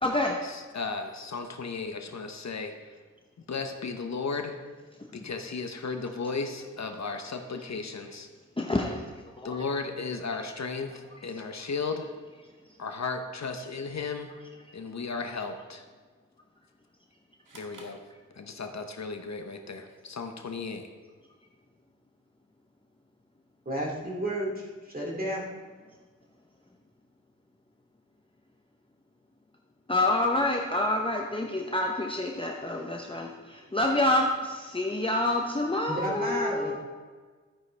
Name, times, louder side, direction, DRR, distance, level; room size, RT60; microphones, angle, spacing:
voice 1, 0.0-0.4 5.0-5.3 8.6-9.7 12.7-12.8 29.9-36.8, left 1 dB, 15° left, 0 dB, 0.8 m, -28 dB
voice 2, 0.5-2.9 3.5-4.6 5.1-8.3 9.4-12.1 12.8-14.3 14.7-15.8 17.5-18.0 18.3-20.9, left 4 dB, 60° left, 6 dB, 0.9 m, -35 dB
sound 1, 17.4-18.9, right 3 dB, 85° right, 1.7 m, -53 dB
voice 3, 23.7-25.4 35.9-36.8, right 1 dB, 30° right, -3 dB, 2.6 m, -32 dB
12.5 x 9.5 x 3.4 m, 1.4 s
wide cardioid pair, 110°, 31 cm